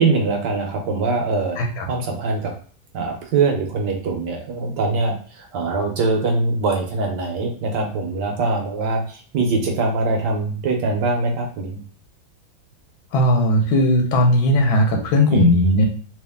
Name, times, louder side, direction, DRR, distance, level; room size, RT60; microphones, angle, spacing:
voice 1, 0.0-1.6 1.9-2.5 2.9-11.8 15.3-15.6, right 3 dB, 65° right, 2 dB, 1.3 m, -22 dB
voice 2, 13.1-15.9, left 1 dB, 90° left, 3 dB, 1.7 m, -17 dB
3.6 x 2.9 x 3.4 m, 0.42 s
omnidirectional pair, 2.2 m